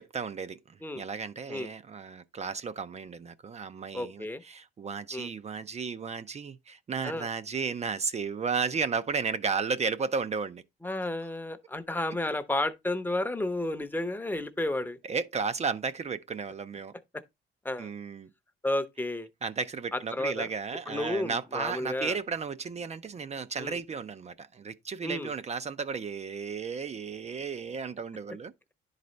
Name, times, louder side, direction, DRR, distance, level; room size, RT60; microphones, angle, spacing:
voice 1, 0.0-10.6 15.0-16.9 17.8-18.3 19.4-28.5, right 5 dB, 35° right, 0.5 m, -34 dB
voice 2, 3.9-4.4 5.1-5.3 7.0-7.3 10.8-15.0 17.6-17.9 18.6-19.3 19.9-20.5 20.9-22.2 23.6-23.8 25.0-25.3, left 1 dB, 10° left, 0.7 m, -32 dB
10.5 x 4.0 x 3.1 m
cardioid pair, 90°, 20 cm